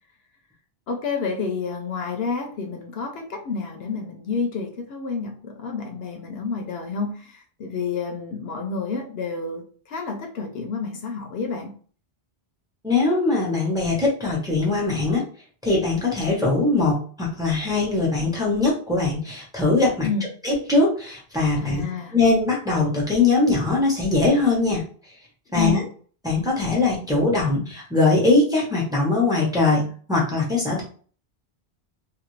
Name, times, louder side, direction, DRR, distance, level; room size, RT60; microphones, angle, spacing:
voice 1, 0.9-11.7 20.0-20.3 21.6-22.2 25.5-25.9, left 5 dB, 70° left, 3 dB, 0.8 m, -29 dB
voice 2, 12.8-15.2 15.6-20.1 20.4-21.8 22.1-24.8 25.5-25.8 26.2-30.8, left 3 dB, 5° right, -3 dB, 0.8 m, -21 dB
2.6 x 2.5 x 3.1 m, 0.44 s
omnidirectional pair, 1.1 m